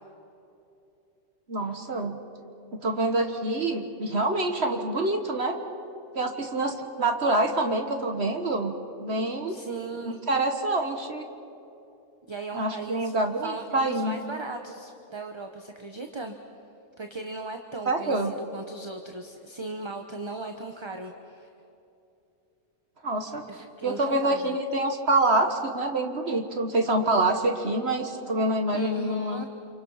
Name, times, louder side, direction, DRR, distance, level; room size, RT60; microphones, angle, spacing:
voice 1, 1.5-2.2 2.7-5.6 6.1-8.7 9.0-9.6 10.1-11.3 12.5-14.2 17.8-18.3 23.0-23.4 23.8-29.4, right 2 dB, 50° right, 5 dB, 1.7 m, -26 dB
voice 2, 9.5-10.2 12.3-13.1 13.4-16.3 17.0-21.5 23.5-24.6 28.7-29.5, right 3 dB, 20° right, 5 dB, 1.0 m, -38 dB
29.0 x 27.0 x 5.8 m, 2.8 s
omnidirectional pair, 1.4 m